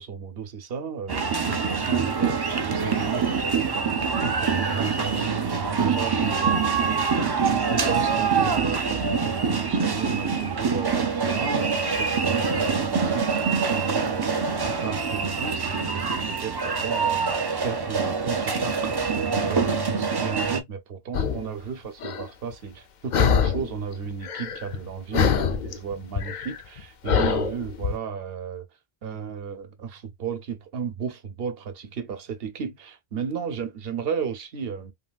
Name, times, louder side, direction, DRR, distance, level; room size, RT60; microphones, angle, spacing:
voice 1, 0.0-2.4 2.7-7.2 7.7-28.6 29.0-34.9, right 6 dB, 65° right, 0.9 m, -34 dB
sound 1, 1.1-20.6, right 5 dB, 40° right, 0.3 m, -25 dB
sound 2, 21.1-21.4 22.0-22.2 23.1-23.8 24.0-24.9 25.1-27.9, left 6 dB, 55° left, 0.6 m, -24 dB
3.1 x 2.7 x 2.2 m
omnidirectional pair, 1.1 m